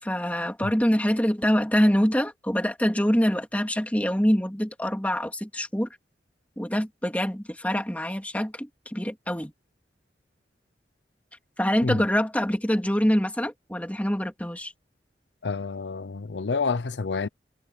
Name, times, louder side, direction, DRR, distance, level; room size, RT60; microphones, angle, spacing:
voice 1, 0.0-6.0 6.6-9.5 11.6-14.7, equal, 10° left, 2.9 m, -25 dB
voice 2, 15.4-17.3, left 4 dB, 85° left, 0.7 m, -28 dB
head